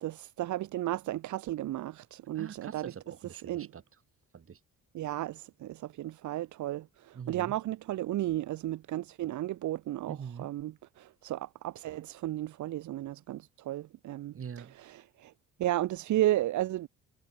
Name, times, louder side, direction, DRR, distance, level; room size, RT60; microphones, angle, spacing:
voice 1, 0.0-2.8 3.5-3.7 4.9-14.3 14.8-15.3 15.6-16.9, right 14 dB, 75° right, 1.0 m, -33 dB
voice 2, 2.3-3.8 4.3-4.6 7.1-7.6 10.1-10.5 14.3-14.8, right 7 dB, 45° right, 3.3 m, -43 dB
cardioid pair, 90°, 30 cm